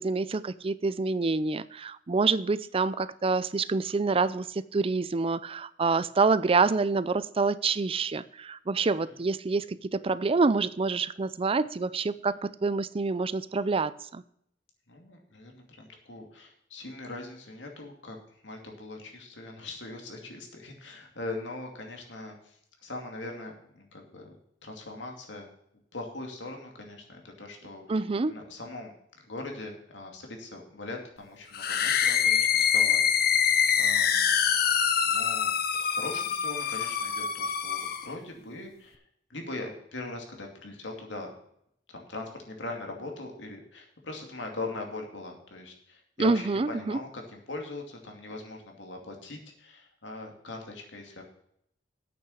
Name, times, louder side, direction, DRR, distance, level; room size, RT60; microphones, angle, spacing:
voice 1, 0.0-14.2 27.9-28.4 46.2-47.0, right 4 dB, 30° right, 16 dB, 0.5 m, -27 dB
voice 2, 14.9-18.2 18.4-22.6 22.8-24.4 24.6-25.5 25.9-28.0 28.3-28.9 29.3-33.0 33.5-34.5 35.0-39.0 39.3-41.3 41.9-51.2, left 2 dB, 85° left, 2 dB, 2.5 m, -41 dB
sound 1, 31.5-38.1, left 8 dB, 55° left, 0.9 m, -25 dB
8.7 x 6.7 x 7.9 m, 0.72 s
head